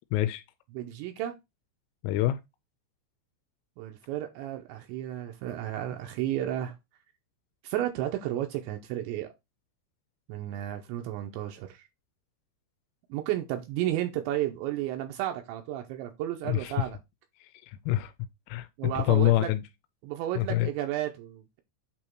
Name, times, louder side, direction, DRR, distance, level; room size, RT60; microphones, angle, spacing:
voice 1, 0.1-0.4 2.0-2.4 16.4-16.7 17.7-18.1 18.5-19.6 20.4-20.7, left 15 dB, 90° left, 3.2 m, -26 dB
voice 2, 0.7-1.3 3.8-6.8 7.6-9.3 10.3-11.9 13.1-17.0 18.8-19.5 20.0-21.6, right 13 dB, 85° right, 2.7 m, -32 dB
8.5 x 2.9 x 4.5 m
omnidirectional pair, 5.8 m